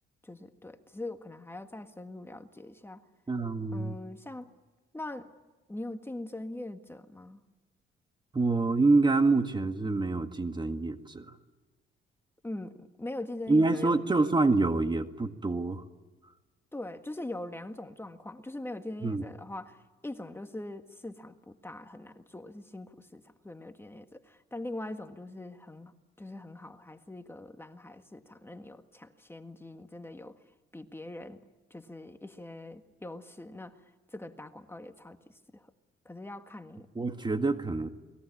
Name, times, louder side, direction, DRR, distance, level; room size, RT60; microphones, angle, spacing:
voice 1, 0.2-3.0 3.7-4.5 4.9-5.3 5.7-7.4 12.4-14.0 16.7-30.4 30.7-31.4 31.7-35.7 36.0-36.9, left 1 dB, 10° left, 7 dB, 1.7 m, -42 dB
voice 2, 3.3-3.9 8.3-11.4 13.5-15.8 19.0-19.2 37.0-37.9, right 3 dB, 20° right, 8 dB, 1.9 m, -26 dB
29.0 x 21.0 x 8.6 m, 1.2 s
cardioid pair, 90°, 20 cm